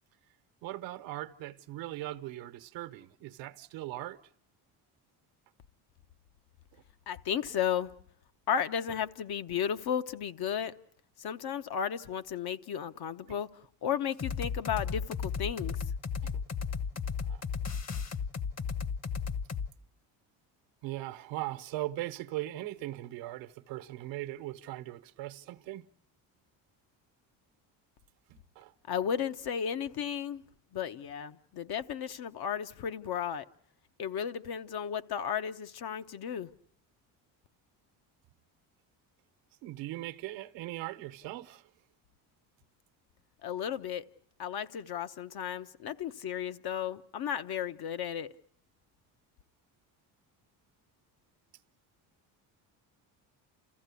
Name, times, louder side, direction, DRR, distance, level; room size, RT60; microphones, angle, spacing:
voice 1, 0.6-4.2 6.7-6.8 16.2-16.4 17.3-17.4 18.6-18.7 20.8-25.9 28.3-28.7 39.6-41.7, right 16 dB, 80° right, 1.1 m, -39 dB
voice 2, 7.1-7.9 8.5-10.7 11.2-13.5 13.8-15.8 28.9-30.4 30.7-33.4 34.0-36.5 43.4-44.0 44.4-48.3, left 8 dB, 55° left, 1.0 m, -34 dB
sound 1, 14.2-19.7, left 6 dB, 35° left, 1.2 m, -34 dB
29.5 x 15.0 x 8.3 m
supercardioid pair, 80°, 45 cm